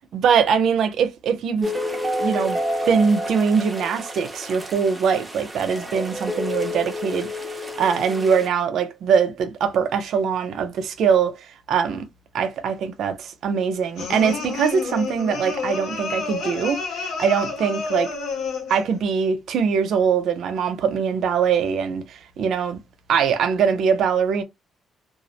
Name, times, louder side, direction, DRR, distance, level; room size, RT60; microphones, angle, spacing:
voice 1, 0.1-1.7 2.2-2.6 2.9-7.3 7.8-12.1 12.3-18.1 18.7-22.8 23.1-24.4, right 6 dB, 70° right, 0.5 m, -22 dB
sound 1, 1.6-8.5, left 1 dB, 20° right, 0.6 m, -29 dB
sound 2, 14.0-18.9, left 4 dB, 85° left, 0.8 m, -29 dB
2.3 x 2.0 x 2.7 m
cardioid pair, 90°, 0 cm